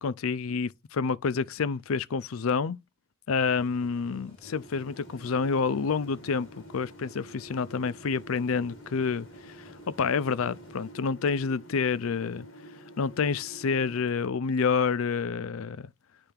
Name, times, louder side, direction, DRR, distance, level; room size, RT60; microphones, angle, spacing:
voice 1, 0.0-2.8 3.3-9.7 10.0-12.5 13.0-15.9, left 5 dB, 90° left, 0.5 m, -28 dB
sound 1, 3.4-10.9, left 2 dB, 25° left, 5.1 m, -54 dB
sound 2, 4.4-14.0, right 1 dB, 65° left, 1.4 m, -49 dB
9.8 x 3.4 x 3.4 m
head